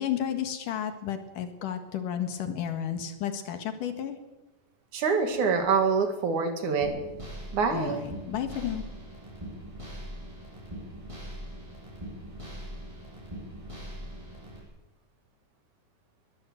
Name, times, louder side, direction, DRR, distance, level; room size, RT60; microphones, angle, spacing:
voice 1, 0.0-4.2 7.7-8.8, left 9 dB, 70° left, 8 dB, 3.3 m, -32 dB
voice 2, 4.9-7.0 7.5-8.0, right 5 dB, 65° right, 6 dB, 3.6 m, -25 dB
sound 1, 6.8-14.6, equal, 10° right, 7.9 m, -41 dB
22.0 x 16.0 x 7.9 m, 1.1 s
omnidirectional pair, 3.8 m